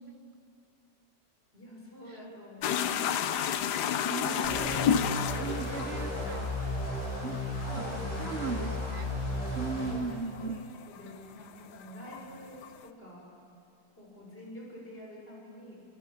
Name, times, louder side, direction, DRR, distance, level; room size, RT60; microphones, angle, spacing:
voice 1, 1.5-3.4 4.7-6.4 7.7-8.3 9.6-13.3 14.0-15.8, equal, 30° left, -3 dB, 6.7 m, -48 dB
sound 1, 2.6-11.1 11.4-12.8, left 9 dB, 70° left, 1.4 m, -32 dB
voice 2, 4.0-5.0 5.4-6.4 7.2-7.4 7.8-7.9 8.2-9.1 9.5-10.6, right 5 dB, 40° right, 10 dB, 1.1 m, -37 dB
sound 2, 4.4-10.0, left 1 dB, 85° left, 6.6 m, -34 dB
29.0 x 24.5 x 7.4 m, 2.5 s
omnidirectional pair, 1.9 m